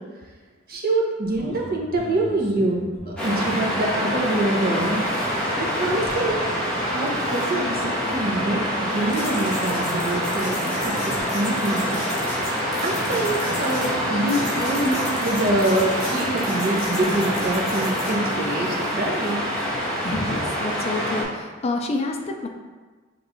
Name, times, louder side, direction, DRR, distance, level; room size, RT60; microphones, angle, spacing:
voice 1, 0.7-5.0 5.6-6.5 6.7-12.1 12.8-19.4, right 1 dB, 50° right, -2 dB, 0.8 m, -25 dB
sound 1, 1.3-3.5 3.9-6.8 7.7-8.3 8.9-18.1, left 2 dB, 70° left, 1.4 m, -39 dB
Waves surf, 3.2-21.2, equal, 5° left, 1.0 m, -26 dB
voice 2, 20.0-22.5, left 2 dB, 30° left, 3 dB, 0.3 m, -28 dB
6.2 x 3.1 x 2.6 m, 1.3 s
head